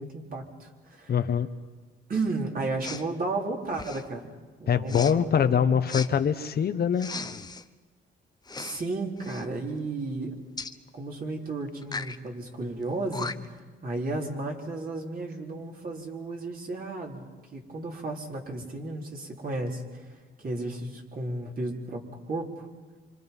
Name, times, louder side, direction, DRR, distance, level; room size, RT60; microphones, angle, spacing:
voice 1, 0.0-1.2 2.1-4.3 4.6-5.8 8.6-10.3 10.9-13.3 13.8-22.7, right 2 dB, 45° right, 0 dB, 4.0 m, -33 dB
voice 2, 1.1-1.5 4.7-7.1, left 7 dB, 50° left, 10 dB, 1.1 m, -24 dB
Respiratory sounds, 2.8-3.1 3.7-4.1 4.9-5.1 5.9-6.1 7.0-7.6 8.4-8.8 9.2-9.5 10.6-10.8 11.8-12.2 12.8-12.9 13.1-13.6, left 4 dB, 20° left, 0.9 m, -37 dB
27.0 x 26.0 x 5.5 m, 1.4 s
cardioid pair, 90°, 20 cm